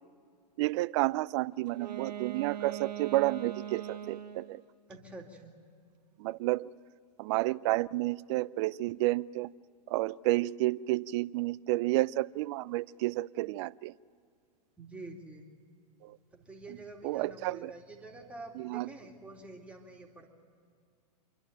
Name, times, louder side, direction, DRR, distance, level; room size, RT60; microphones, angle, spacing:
voice 1, 0.6-4.6 6.2-6.7 7.2-9.5 9.9-13.9 17.0-17.7 18.6-18.9, right 18 dB, 45° right, 19 dB, 0.4 m, -30 dB
Wind instrument woodwind instrument, 1.7-4.6, right 10 dB, 90° right, 1.3 m, -41 dB
voice 2, 4.9-5.6 14.8-15.5 16.3-20.3, right 2 dB, 5° right, 0 dB, 2.4 m, -47 dB
26.5 x 11.5 x 9.1 m, 2.3 s
hypercardioid pair, 125°, 21 cm